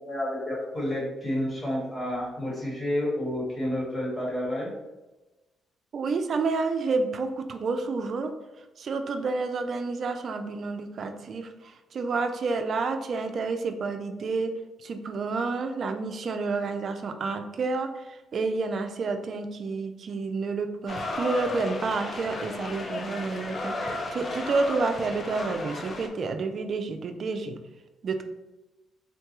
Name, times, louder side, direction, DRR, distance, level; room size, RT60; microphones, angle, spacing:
voice 1, 0.0-4.7, left 1 dB, 25° left, -4 dB, 1.5 m, -30 dB
voice 2, 5.9-8.3 8.8-14.5 14.8-27.6 28.0-28.2, right 4 dB, 55° right, 7 dB, 0.4 m, -29 dB
sound 1, 20.9-26.1, left 2 dB, 45° left, 0.5 m, -34 dB
3.8 x 2.2 x 3.0 m, 1.1 s
cardioid pair, 90°, 0 cm